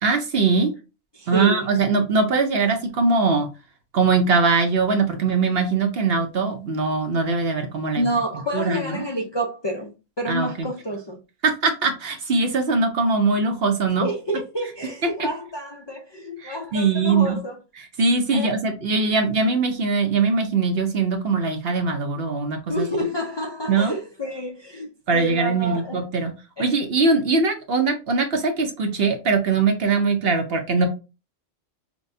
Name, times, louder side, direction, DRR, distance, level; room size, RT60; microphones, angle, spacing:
voice 1, 0.0-0.7 1.3-3.5 3.9-8.0 8.5-9.0 10.3-10.7 11.4-14.1 15.2-15.3 16.4-17.4 18.0-22.9 23.7-23.9 25.1-26.3 26.6-30.9, right 4 dB, 55° right, 0.9 m, -21 dB
voice 2, 1.1-1.7 8.0-11.2 13.9-17.6 18.3-18.5 22.7-26.0 26.6-26.7, equal, 45° left, 0.3 m, -28 dB
6.1 x 2.2 x 2.6 m
omnidirectional pair, 1.3 m